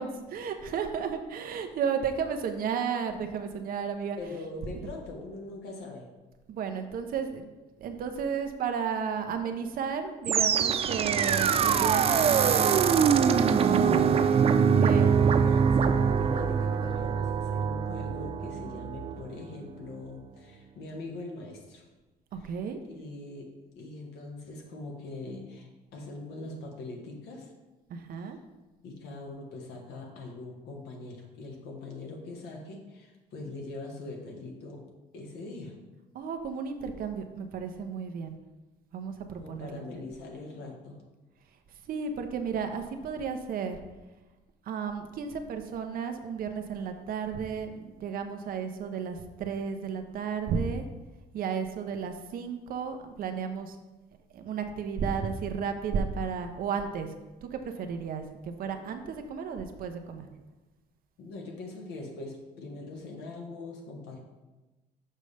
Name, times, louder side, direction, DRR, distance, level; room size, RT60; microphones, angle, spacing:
voice 1, 0.0-4.2 6.5-7.5 7.8-12.8 13.5-15.1 22.4-22.8 27.9-28.4 36.1-38.4 38.9-40.0 41.9-43.8 44.6-50.9 51.3-53.8 54.3-57.1 57.5-60.3, right 6 dB, 60° right, 6 dB, 0.7 m, -33 dB
voice 2, 4.1-6.1 15.0-21.8 22.4-22.5 22.8-27.5 28.2-28.3 28.8-34.8 35.1-35.8 39.3-41.0 61.2-64.2, left 2 dB, 75° left, 1 dB, 1.5 m, -42 dB
sound 1, 10.2-19.4, right 6 dB, 35° right, 0.4 m, -24 dB
6.5 x 5.2 x 3.3 m, 1.1 s
cardioid pair, 110°, 17 cm